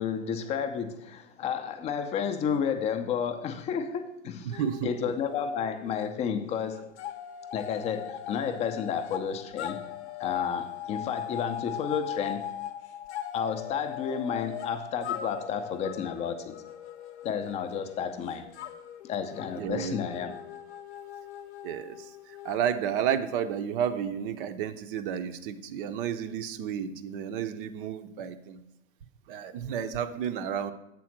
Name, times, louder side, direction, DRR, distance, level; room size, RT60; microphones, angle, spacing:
voice 1, 0.0-6.9 7.5-9.8 10.2-12.5 13.3-16.5 17.2-18.5 19.0-20.3, left 7 dB, 20° left, 8 dB, 0.5 m, -31 dB
voice 2, 4.4-4.9 19.6-20.0 21.6-28.6 29.3-30.7, right 8 dB, 45° right, 11 dB, 0.6 m, -31 dB
sound 1, 4.5-6.1 6.4-23.5, left 10 dB, 60° left, 0.7 m, -40 dB
7.5 x 4.1 x 5.9 m, 0.87 s
hypercardioid pair, 115°, 37 cm